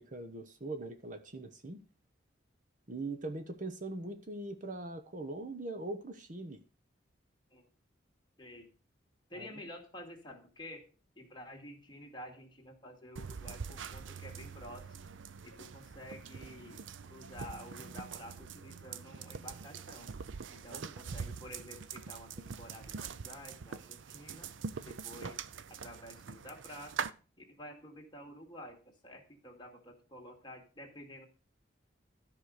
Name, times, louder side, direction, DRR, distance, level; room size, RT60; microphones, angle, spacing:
voice 1, 0.0-1.8 2.9-6.6 9.3-9.5 20.7-20.9, right 2 dB, 45° right, 1.0 m, -41 dB
voice 2, 8.4-8.7 9.3-10.9 11.2-15.1 15.4-20.1 20.5-24.6 24.8-27.1 27.4-31.3, equal, 25° left, 2.4 m, -50 dB
sound 1, 13.2-27.1, right 6 dB, 75° right, 0.6 m, -44 dB
13.0 x 5.4 x 6.6 m
head